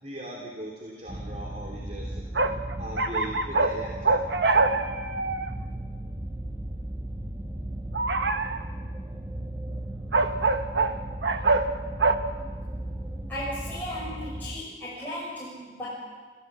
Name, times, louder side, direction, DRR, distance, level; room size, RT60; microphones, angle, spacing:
voice 1, 0.0-2.2 2.8-4.1, right 1 dB, 40° right, -3 dB, 3.2 m, -39 dB
sound 1, 1.1-14.6, right 1 dB, 15° right, 1.1 m, -36 dB
sound 2, 2.3-3.8 4.0-5.5 7.9-8.6 10.1-10.9 11.2-11.7 12.0-12.1, right 3 dB, 80° right, 1.2 m, -24 dB
voice 2, 13.3-15.9, left 1 dB, 10° left, -9 dB, 6.4 m, -36 dB
27.0 x 16.0 x 7.4 m, 1.5 s
head